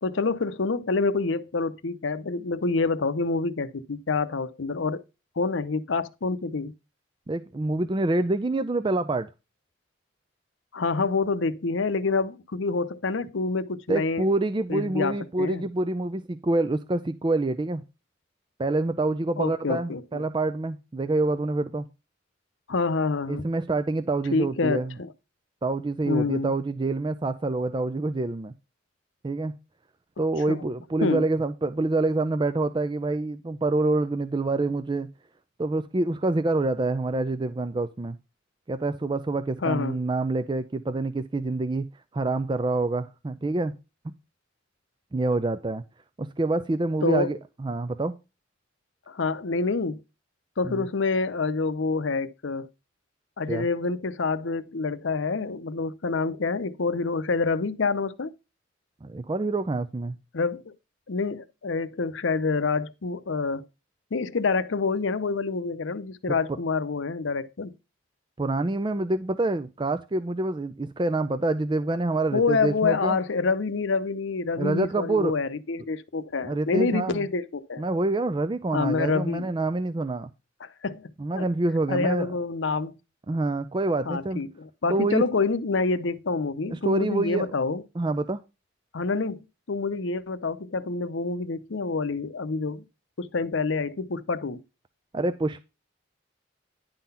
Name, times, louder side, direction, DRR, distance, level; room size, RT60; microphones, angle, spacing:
voice 1, 0.0-5.0 5.4-6.7 10.7-14.3 14.7-15.7 19.4-20.2 22.7-23.4 24.3-25.1 26.1-26.5 30.5-30.7 31.0-31.3 39.6-40.0 47.0-47.3 49.1-50.0 50.6-52.7 53.4-58.3 60.3-60.7 61.1-63.7 64.1-67.7 72.3-77.8 78.7-79.5 80.6-81.5 81.9-82.9 84.1-87.8 88.9-92.8 93.2-94.6, left 4 dB, 75° left, 0.7 m, -27 dB
voice 2, 7.3-9.3 13.9-17.8 18.6-21.9 23.3-25.0 25.6-28.5 29.2-29.6 30.2-35.1 35.6-38.2 38.7-41.9 42.1-43.8 45.1-45.8 46.2-48.1 50.6-50.9 53.5-53.7 59.0-60.2 66.3-66.6 68.4-73.2 74.6-75.3 76.4-77.3 77.8-80.3 81.2-82.3 83.3-84.4 84.9-85.2 86.7-87.5 88.0-88.4 95.1-95.6, right 2 dB, 25° right, 0.4 m, -26 dB
10.5 x 3.9 x 5.6 m
head